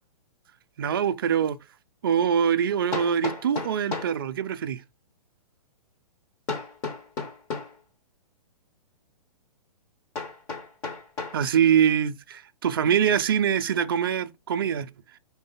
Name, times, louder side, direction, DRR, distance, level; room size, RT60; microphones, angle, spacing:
voice 1, 0.8-1.6 2.0-4.8 11.3-14.9, right 8 dB, 35° right, 0.5 m, -24 dB
Hammer, 1.3-1.4 2.9-4.2 6.5-7.8 10.1-11.4, left 4 dB, 15° left, 1.0 m, -33 dB
5.4 x 3.8 x 5.5 m
hypercardioid pair, 180°, 20 cm